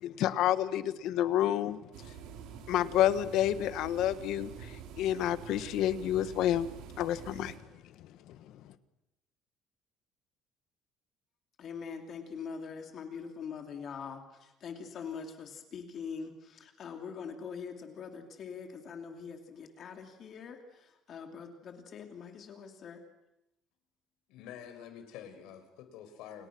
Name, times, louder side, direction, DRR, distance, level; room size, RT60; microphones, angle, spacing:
voice 1, 0.0-1.8 2.7-6.7 7.0-7.5 8.3-8.4, left 11 dB, 65° left, 13 dB, 1.5 m, -29 dB
sound 1, 1.9-7.6, right 8 dB, 85° right, 4.0 m, -47 dB
voice 2, 11.6-23.0, left 6 dB, 40° left, 5 dB, 3.0 m, -43 dB
voice 3, 24.3-26.5, left 9 dB, 85° left, 7 dB, 5.8 m, -47 dB
29.5 x 29.0 x 6.2 m, 0.91 s
cardioid pair, 170°, 0 cm